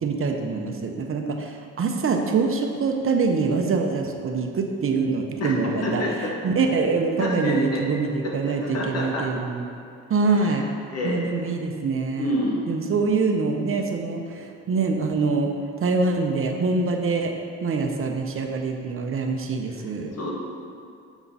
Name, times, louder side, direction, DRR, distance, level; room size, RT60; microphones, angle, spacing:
voice 1, 0.0-6.0 6.4-9.6 10.1-10.6 11.0-12.3 12.7-15.5 15.8-17.3 17.6-20.1, right 4 dB, 45° right, 3 dB, 0.7 m, -24 dB
voice 2, 5.4-6.3 7.2-7.8 8.2-9.3 10.3-11.5 12.2-12.6 20.1-20.3, left 2 dB, 55° left, -2 dB, 1.6 m, -29 dB
7.1 x 3.7 x 5.4 m, 2.5 s
cardioid pair, 90°, 30 cm